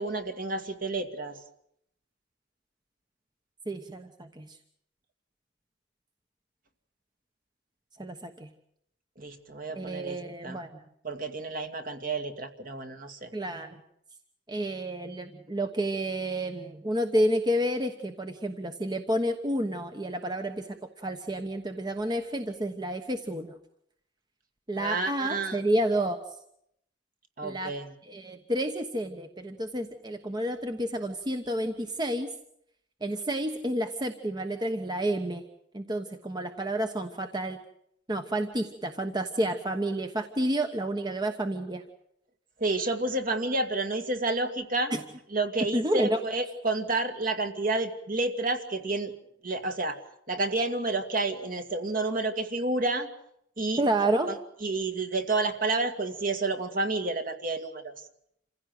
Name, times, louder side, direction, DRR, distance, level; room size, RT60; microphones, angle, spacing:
voice 1, 0.0-1.3 9.2-10.2 10.4-10.6 11.0-13.3 24.8-25.6 27.4-27.9 42.6-44.9 45.3-49.1 49.4-50.0 50.3-53.1 53.6-53.8 54.6-57.9, right 2 dB, 50° right, 5 dB, 2.2 m, -30 dB
voice 2, 3.7-4.6 8.0-8.5 9.7-10.8 13.3-13.8 14.5-23.5 24.7-26.2 27.4-27.7 28.0-32.3 33.0-35.4 35.7-37.6 38.1-41.8 44.9-45.0 45.7-46.2 53.8-54.3, right 1 dB, 25° right, 6 dB, 1.2 m, -30 dB
27.5 x 16.0 x 7.8 m, 0.74 s
head